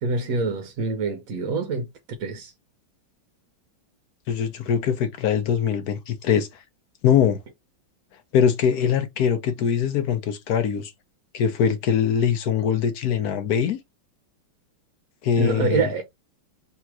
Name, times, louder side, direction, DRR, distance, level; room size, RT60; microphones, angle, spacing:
voice 1, 0.0-1.9 2.2-2.5 15.4-16.0, right 3 dB, 60° right, 0.9 m, -25 dB
voice 2, 4.3-6.5 7.0-7.4 8.3-10.9 11.3-13.8 15.2-15.9, left 8 dB, 65° left, 0.9 m, -22 dB
3.4 x 2.9 x 4.6 m
omnidirectional pair, 2.3 m